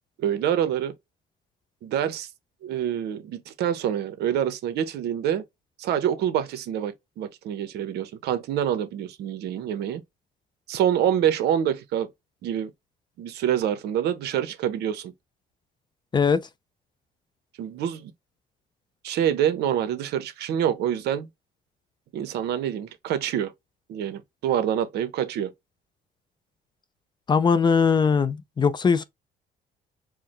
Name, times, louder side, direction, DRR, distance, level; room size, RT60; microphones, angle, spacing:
voice 1, 0.2-0.9 1.8-2.3 2.6-5.4 5.8-10.0 10.7-12.1 12.4-12.7 13.2-15.1 17.6-18.1 19.0-21.3 22.1-23.5 23.9-25.5, right 10 dB, 75° right, 0.9 m, -26 dB
voice 2, 16.1-16.5 27.3-29.0, left 5 dB, 25° left, 0.5 m, -20 dB
4.8 x 2.1 x 3.0 m
cardioid pair, 110°, 17 cm